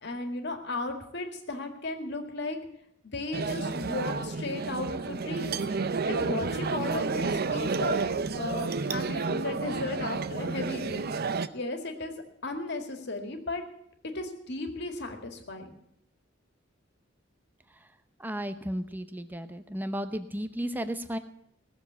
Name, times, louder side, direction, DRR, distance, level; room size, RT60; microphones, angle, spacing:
voice 1, 0.0-2.6 3.0-5.6 6.1-8.0 8.3-11.1 11.5-12.1 12.4-13.6 14.1-15.7, left 2 dB, 60° left, 5 dB, 2.0 m, -35 dB
sound 1, 3.3-11.5, right 4 dB, 55° right, 0.6 m, -30 dB
voice 2, 18.2-21.2, equal, 10° right, 10 dB, 0.8 m, -34 dB
18.0 x 7.2 x 8.1 m, 0.75 s
head